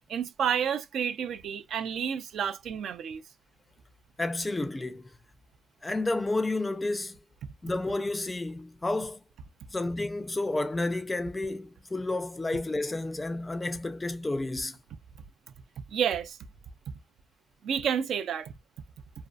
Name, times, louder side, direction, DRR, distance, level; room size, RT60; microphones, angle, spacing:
voice 1, 0.1-3.2 15.9-16.4 17.6-18.5, right 8 dB, 70° right, 0.3 m, -30 dB
voice 2, 4.2-5.1 5.8-7.2 7.6-9.2 9.7-14.8, left 2 dB, 15° left, 0.4 m, -31 dB
2.5 x 2.2 x 2.3 m
cardioid pair, 90°, 0 cm